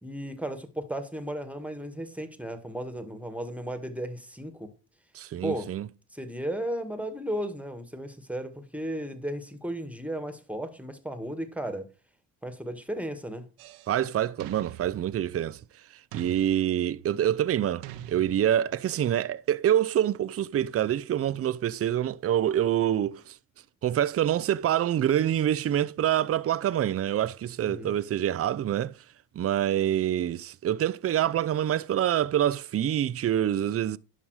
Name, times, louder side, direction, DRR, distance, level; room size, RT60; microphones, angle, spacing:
voice 1, 0.0-4.7 5.4-5.7 6.1-11.9 12.4-13.5 27.6-27.9, right 1 dB, 5° right, 1.8 m, -35 dB
voice 2, 5.1-5.9 13.9-15.6 16.1-23.3 23.8-28.9 29.3-34.0, right 11 dB, 40° right, 0.5 m, -26 dB
sound 1, 13.6-14.0 14.4-15.7 16.1-17.2 17.8-18.9, right 11 dB, 90° right, 1.0 m, -45 dB
11.0 x 5.4 x 4.8 m
supercardioid pair, 65°, 37 cm